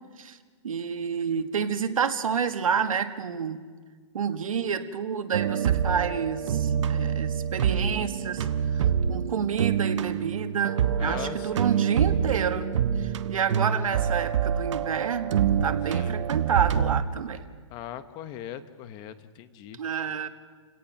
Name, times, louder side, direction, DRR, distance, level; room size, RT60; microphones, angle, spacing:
voice 1, 0.6-3.6 4.1-8.5 8.7-8.8 9.1-12.7 13.0-17.4 19.8-20.3, right 7 dB, 90° right, 8 dB, 1.8 m, -29 dB
sound 1, 5.3-17.0, right 8 dB, 60° right, 1.1 m, -26 dB
voice 2, 11.0-11.9 15.9-16.1 17.7-20.1, left 10 dB, 25° left, 12 dB, 1.0 m, -40 dB
29.5 x 17.5 x 5.9 m, 1.5 s
hypercardioid pair, 155°, 17 cm